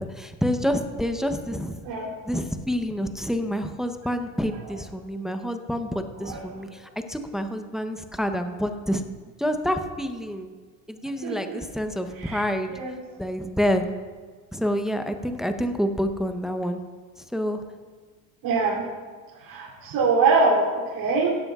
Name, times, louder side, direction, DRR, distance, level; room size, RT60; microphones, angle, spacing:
voice 1, 0.0-1.8 2.2-9.0 9.4-10.5 10.9-12.7 13.2-13.8 14.5-16.8 17.3-17.6, equal, ahead, 7 dB, 0.8 m, -28 dB
voice 2, 11.2-11.6 12.2-12.4 12.7-13.0 18.4-18.8 19.4-21.4, right 4 dB, 70° right, -6 dB, 3.1 m, -23 dB
16.0 x 11.0 x 2.4 m, 1.5 s
supercardioid pair, 90°, 42 cm